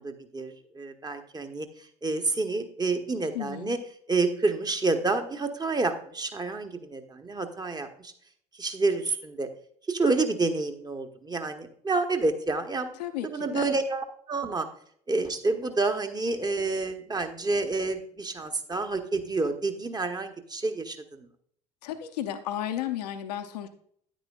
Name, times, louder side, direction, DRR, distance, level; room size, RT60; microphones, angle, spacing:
voice 1, 0.0-1.7 2.0-3.8 4.1-8.1 8.6-9.5 9.9-12.9 13.3-14.7 15.1-21.3, right 3 dB, 20° right, 7 dB, 1.1 m, -29 dB
voice 2, 3.1-3.8 13.0-13.7 21.8-23.7, left 11 dB, 75° left, 6 dB, 0.7 m, -34 dB
9.7 x 9.2 x 2.4 m, 0.63 s
figure-of-eight pair, 65°, 21 cm